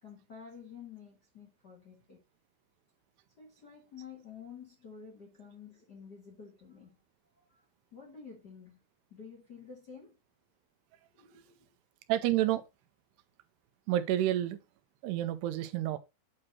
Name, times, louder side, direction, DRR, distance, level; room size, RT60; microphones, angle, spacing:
voice 1, 0.0-2.2 3.4-7.0 7.3-7.6 7.9-8.8 9.1-10.2 11.1-11.7, left 6 dB, 60° left, 1.0 m, -50 dB
voice 2, 12.1-12.6 13.9-14.6 15.0-16.0, right 13 dB, 85° right, 2.7 m, -29 dB
8.8 x 3.0 x 5.9 m
omnidirectional pair, 4.9 m